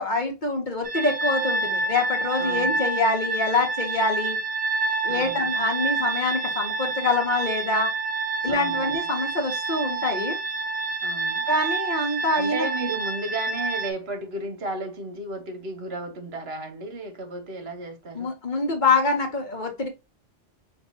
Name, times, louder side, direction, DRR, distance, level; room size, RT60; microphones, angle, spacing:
voice 1, 0.0-4.4 5.0-7.9 8.4-10.4 11.5-12.7 18.1-19.9, left 3 dB, 45° left, 1.0 m, -25 dB
sound 1, 0.8-13.9, right 3 dB, 40° right, 0.5 m, -28 dB
voice 2, 2.4-2.8 5.1-5.5 8.5-9.1 11.0-11.5 12.4-18.3, right 2 dB, 65° right, 1.2 m, -34 dB
5.7 x 2.6 x 2.7 m
omnidirectional pair, 1.2 m